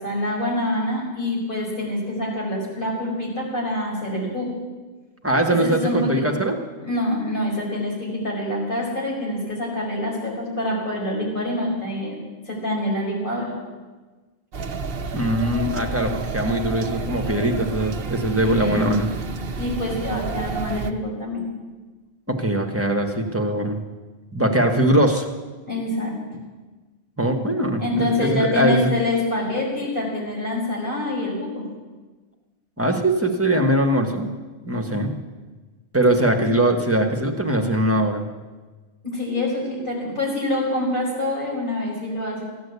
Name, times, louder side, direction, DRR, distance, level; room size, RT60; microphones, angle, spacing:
voice 1, 0.0-4.5 5.6-6.2 6.8-12.2 12.5-13.5 18.4-19.0 19.6-21.4 25.7-26.1 27.8-31.7 39.0-42.4, left 1 dB, 45° left, -4 dB, 5.2 m, -26 dB
voice 2, 5.2-6.5 15.1-19.1 22.3-23.8 24.3-25.3 27.2-28.9 32.8-34.3 34.6-35.1 35.9-38.3, right 1 dB, 10° right, 2 dB, 1.4 m, -21 dB
sound 1, 14.5-20.9, right 4 dB, 55° right, 1.1 m, -30 dB
15.5 x 10.5 x 8.2 m, 1.3 s
omnidirectional pair, 1.2 m